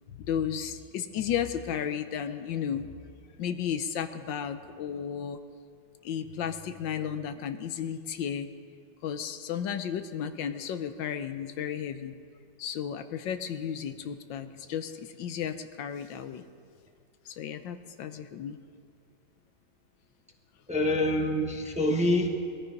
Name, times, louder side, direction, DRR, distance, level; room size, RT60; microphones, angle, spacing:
voice 1, 0.2-2.9 3.4-5.4 6.0-8.5 9.0-12.1 12.6-16.4 17.3-18.6, left 8 dB, 85° left, 9 dB, 1.5 m, -33 dB
voice 2, 20.7-22.3, left 1 dB, 5° right, 2 dB, 0.9 m, -26 dB
21.0 x 12.5 x 5.3 m, 2.2 s
omnidirectional pair, 2.0 m